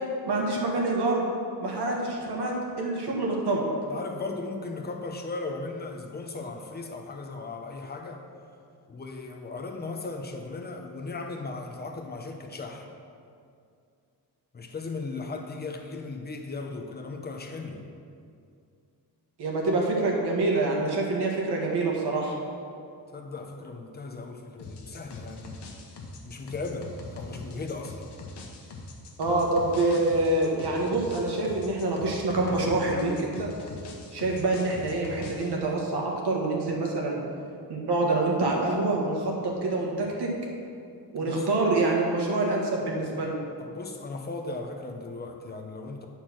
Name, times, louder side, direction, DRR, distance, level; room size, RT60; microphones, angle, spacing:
voice 1, 0.3-1.2 1.6-3.6 19.4-22.4 29.2-33.5 34.1-37.2 37.7-40.3 41.1-43.4, right 2 dB, 75° right, -1 dB, 1.6 m, -26 dB
voice 2, 3.9-8.2 8.9-12.9 14.5-17.8 23.1-25.6 26.2-28.0 41.2-41.5 43.6-46.1, left 3 dB, 25° left, 3 dB, 0.7 m, -37 dB
sound 1, 24.6-35.6, left 2 dB, 80° left, 1.1 m, -42 dB
9.5 x 4.5 x 6.0 m, 2.4 s
wide cardioid pair, 165°, 40 cm